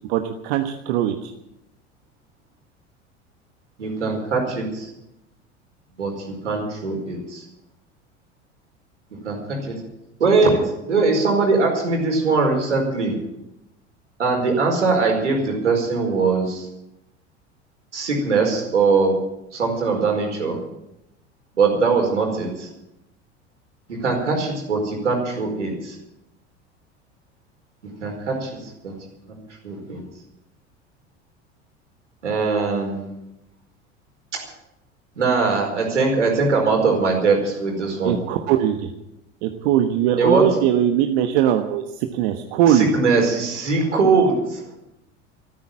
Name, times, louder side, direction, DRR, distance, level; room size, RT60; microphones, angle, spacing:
voice 1, 0.1-1.3 38.0-38.9 39.4-42.9, right 11 dB, 55° right, 5 dB, 1.3 m, -20 dB
voice 2, 3.8-4.9 6.0-6.1 6.4-7.4 9.2-9.8 10.2-13.1 14.2-16.7 17.9-19.1 19.5-20.6 21.6-22.7 24.0-25.9 28.0-28.5 28.8-28.9 29.3-29.4 29.6-30.0 32.2-33.1 35.2-38.2 40.2-40.4 42.7-44.6, right 4 dB, 80° right, 1 dB, 4.8 m, -21 dB
14.0 x 13.5 x 7.3 m, 0.87 s
figure-of-eight pair, 75°, 35 cm